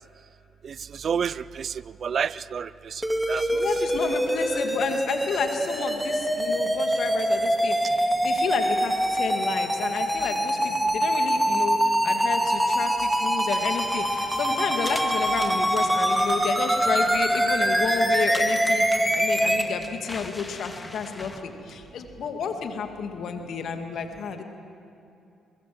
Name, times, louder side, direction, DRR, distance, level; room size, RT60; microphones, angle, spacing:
voice 1, 0.6-1.7 2.0-3.0 3.3-3.6 4.5-4.6, right 7 dB, 55° right, 20 dB, 0.4 m, -30 dB
sound 1, 3.0-19.6, right 1 dB, 10° right, 2.4 m, -24 dB
voice 2, 3.5-18.9 19.1-24.4, left 6 dB, 65° left, 5 dB, 2.2 m, -31 dB
sound 2, 13.6-21.4, left 2 dB, 25° left, 2.1 m, -42 dB
23.0 x 21.5 x 7.7 m, 2.6 s
hypercardioid pair, 45°, 0 cm